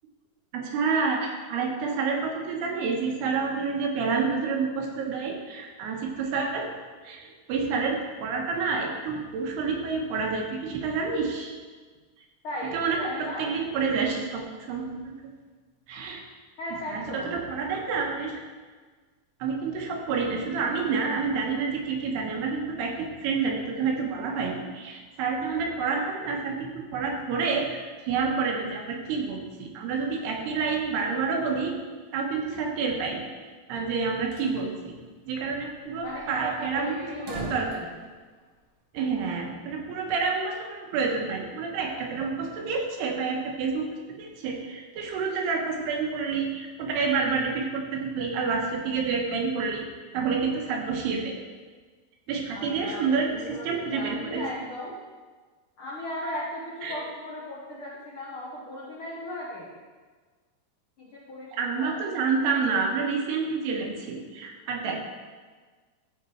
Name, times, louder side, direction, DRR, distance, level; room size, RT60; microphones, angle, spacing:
voice 1, 0.5-6.7 7.0-11.5 12.7-15.1 15.9-16.2 16.9-18.4 19.4-31.7 32.1-33.3 33.7-35.0 35.3-36.9 37.3-37.7 38.9-49.9 50.1-51.4 52.3-54.4 56.8-57.0 61.5-65.0, right 5 dB, 85° right, 1 dB, 3.2 m, -28 dB
voice 2, 12.4-13.5 16.6-17.4 36.0-37.9 52.5-55.0 55.8-59.8 61.0-62.0, left 1 dB, 75° left, -5 dB, 1.2 m, -37 dB
sound 1, 34.3-34.6 34.9-35.0 35.2-35.3 35.8-38.8, right 2 dB, 55° right, 1.5 m, -42 dB
14.0 x 5.3 x 4.6 m, 1.4 s
omnidirectional pair, 4.6 m